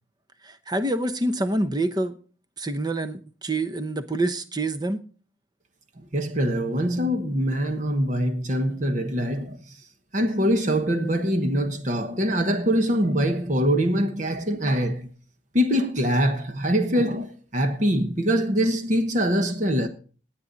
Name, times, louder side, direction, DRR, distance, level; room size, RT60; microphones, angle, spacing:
voice 1, 0.4-2.2 2.6-5.0, right 2 dB, 20° right, 0.8 m, -26 dB
voice 2, 6.0-9.7 10.1-15.1 15.5-19.9, equal, 40° right, 1.2 m, -23 dB
18.5 x 8.7 x 4.0 m
head